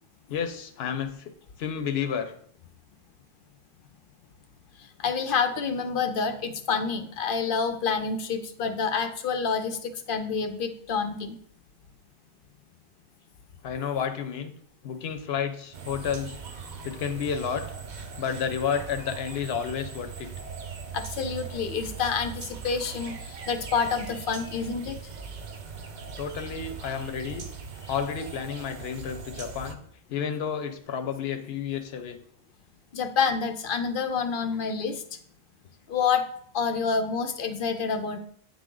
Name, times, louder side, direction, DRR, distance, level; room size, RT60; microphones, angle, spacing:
voice 1, 0.3-1.3 1.6-2.3 13.6-14.5 14.8-16.4 16.8-17.6 18.2-20.3 26.2-27.5 27.9-29.8 30.1-32.2, left 7 dB, 85° left, 8 dB, 0.9 m, -31 dB
voice 2, 5.0-11.4 20.9-25.0 32.9-35.0 35.9-36.3 36.5-38.2, left 5 dB, 60° left, 9 dB, 0.7 m, -28 dB
sound 1, 15.7-29.8, right 5 dB, 50° right, 0.7 m, -40 dB
8.6 x 3.6 x 3.7 m, 0.62 s
omnidirectional pair, 1.0 m